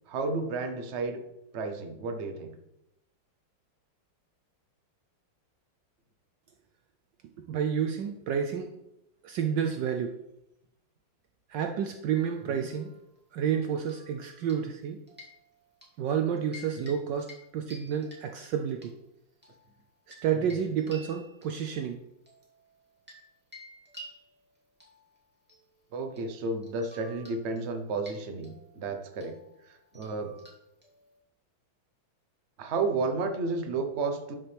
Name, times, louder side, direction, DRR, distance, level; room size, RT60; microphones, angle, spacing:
voice 1, 0.1-1.2 1.5-2.5 12.5-12.7 16.8-16.9 25.9-29.3 29.6-30.3 32.6-34.3, right 3 dB, 45° right, 5 dB, 1.0 m, -32 dB
voice 2, 7.4-8.7 9.2-10.2 11.5-12.9 13.3-15.0 16.0-18.9 20.2-22.0, right 8 dB, 75° right, 6 dB, 1.2 m, -30 dB
sound 1, 12.1-13.2 13.8-14.8 15.1-16.0 16.4-16.9 17.2-17.4 17.7-18.9 19.4-23.3 23.5-31.2, equal, 5° right, 2.2 m, -53 dB
11.5 x 5.8 x 3.4 m, 0.87 s
omnidirectional pair, 2.2 m